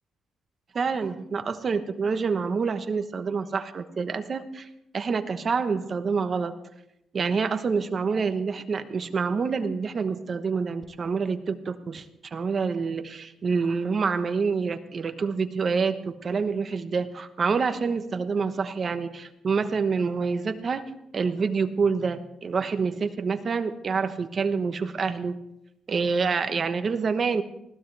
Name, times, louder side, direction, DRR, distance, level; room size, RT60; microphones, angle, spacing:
voice 1, 0.7-4.7 4.9-6.5 7.1-12.0 12.3-20.8 21.1-25.4 25.9-27.4, right 5 dB, 40° right, 8 dB, 1.1 m, -27 dB
20.5 x 15.0 x 3.4 m, 0.82 s
cardioid pair, 135°, 0 cm